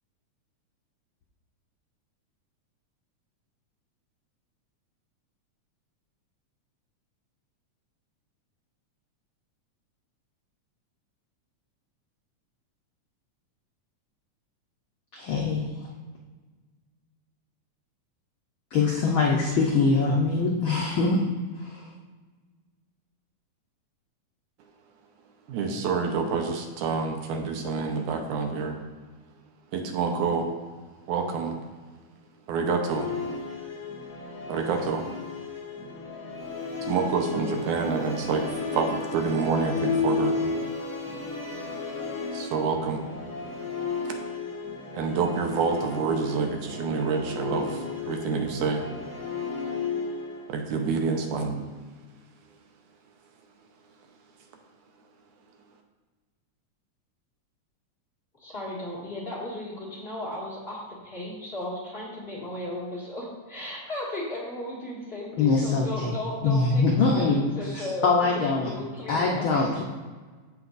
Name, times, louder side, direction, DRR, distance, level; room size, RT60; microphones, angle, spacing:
voice 1, 15.1-15.9 18.7-21.9 65.4-66.2 66.4-68.7 69.1-69.8, left 4 dB, 70° left, -2 dB, 1.2 m, -24 dB
voice 2, 25.5-28.8 29.7-30.5 31.1-31.5 32.5-33.1 34.5-35.1 36.8-38.5 38.7-40.5 42.3-43.0 44.1-44.2 44.9-48.9 50.5-51.6, right 5 dB, 80° right, 3 dB, 2.4 m, -27 dB
Musical instrument, 32.8-50.5, left 4 dB, 55° left, 1.8 m, -33 dB
voice 3, 58.4-69.8, left 1 dB, 20° left, -6 dB, 1.9 m, -35 dB
15.0 x 5.8 x 2.6 m, 1.4 s
omnidirectional pair, 3.5 m